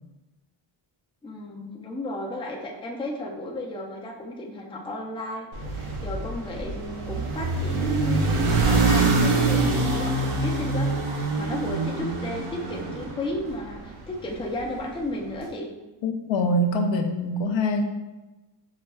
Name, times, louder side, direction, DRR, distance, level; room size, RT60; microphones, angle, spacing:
voice 1, 1.2-15.7, left 1 dB, 10° left, -1 dB, 0.4 m, -34 dB
sound 1, 5.5-13.9, right 3 dB, 80° right, 0.8 m, -25 dB
voice 2, 16.0-17.8, left 1 dB, 65° left, 4 dB, 0.5 m, -24 dB
5.5 x 2.2 x 2.2 m, 1.1 s
wide cardioid pair, 115°, 49 cm